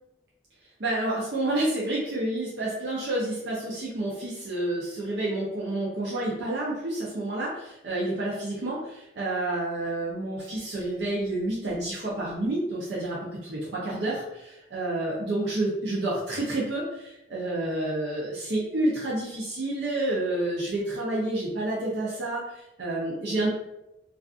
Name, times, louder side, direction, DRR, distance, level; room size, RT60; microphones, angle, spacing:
voice 1, 0.8-13.2 13.5-23.5, right 2 dB, 70° right, -5 dB, 0.5 m, -29 dB
2.4 x 2.4 x 2.4 m, 0.89 s
head